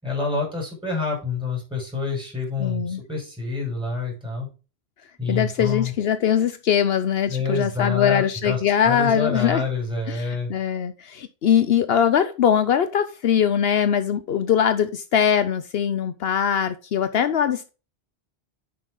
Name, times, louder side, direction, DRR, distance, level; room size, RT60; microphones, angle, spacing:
voice 1, 0.0-4.5 5.2-5.9 7.3-10.5, left 4 dB, 5° right, 6.0 m, -27 dB
voice 2, 2.6-3.0 5.3-9.6 10.1-17.7, left 8 dB, 70° left, 0.9 m, -21 dB
9.6 x 6.1 x 3.8 m
omnidirectional pair, 1.1 m